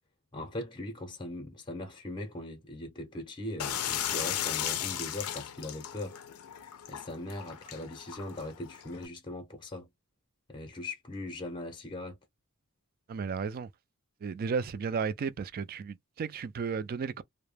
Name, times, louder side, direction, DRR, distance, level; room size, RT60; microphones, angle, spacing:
voice 1, 0.3-6.2 6.9-9.9 10.5-12.2, left 1 dB, 20° left, 0.6 m, -40 dB
sound 1, 3.6-9.1, left 10 dB, 75° left, 0.4 m, -36 dB
voice 2, 13.1-13.7 14.2-17.2, right 5 dB, 40° right, 0.3 m, -34 dB
2.2 x 2.1 x 3.2 m
head